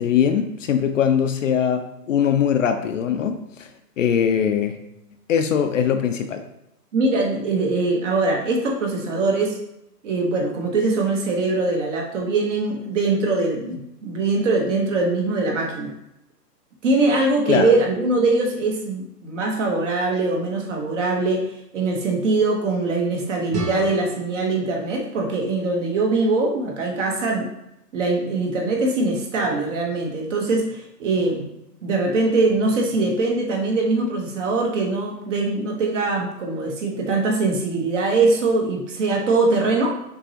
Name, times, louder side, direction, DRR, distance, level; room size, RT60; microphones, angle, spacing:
voice 1, 0.0-3.7 4.0-4.8 5.3-6.4 17.5-17.7, left 8 dB, 55° left, 6 dB, 0.5 m, -21 dB
voice 2, 6.9-9.6 10.0-15.9 16.8-27.5 27.9-31.5 31.8-40.0, right 3 dB, 50° right, 0 dB, 1.1 m, -22 dB
sound 1, 23.5-26.4, right 1 dB, 70° right, 1.4 m, -34 dB
6.2 x 3.0 x 2.8 m, 0.83 s
hypercardioid pair, 135°, 48 cm